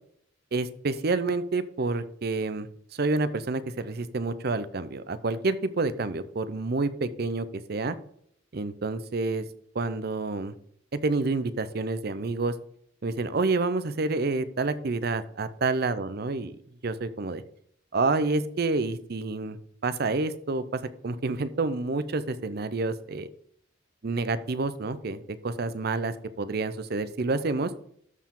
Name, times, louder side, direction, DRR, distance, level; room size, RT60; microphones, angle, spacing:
voice 1, 0.5-8.0 8.5-9.5 9.7-10.5 10.9-12.5 13.0-16.6 16.8-17.4 17.9-19.6 19.8-23.3 24.0-27.7, right 3 dB, 50° right, 13 dB, 0.6 m, -28 dB
13.0 x 4.6 x 3.7 m, 0.66 s
head